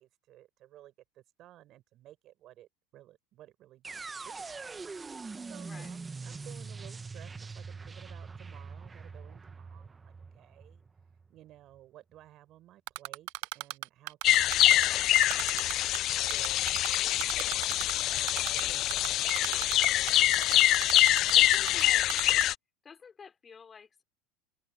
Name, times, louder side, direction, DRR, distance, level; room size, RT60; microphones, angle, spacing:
voice 1, 0.0-4.5 5.0-10.8 11.3-15.9 16.2-16.6 17.3-17.8 18.4-20.8, right 14 dB, 50° right, 5.7 m, -56 dB
sound 1, 3.8-11.8, right 4 dB, 20° right, 1.2 m, -43 dB
Typing, 12.9-14.9 15.2-16.0 16.3-17.9 18.3-18.6 18.9-21.8 22.1-22.4, right 23 dB, 70° right, 0.8 m, -36 dB
sound 2, 14.2-22.5, left 14 dB, 50° left, 0.3 m, -25 dB
voice 2, 20.5-22.1 22.8-24.0, left 6 dB, 25° left, 3.5 m, -51 dB
open air
supercardioid pair, 110°, 0 cm